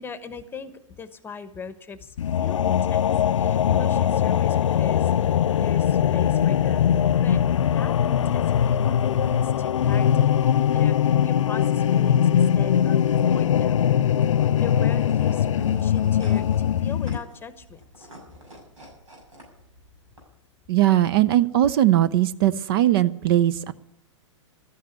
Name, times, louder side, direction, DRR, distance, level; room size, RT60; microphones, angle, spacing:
voice 1, 0.0-5.1 5.5-6.9 7.2-7.4 7.7-13.9 14.6-18.1, left 5 dB, 15° left, 13 dB, 1.1 m, -40 dB
sound 1, 2.2-17.2, left 9 dB, 75° left, 0.4 m, -21 dB
sound 2, 9.0-20.2, equal, 85° right, 6.3 m, -50 dB
voice 2, 20.7-23.7, right 13 dB, 50° right, 16 dB, 0.6 m, -19 dB
13.0 x 9.4 x 8.1 m, 0.78 s
hypercardioid pair, 115°, 16 cm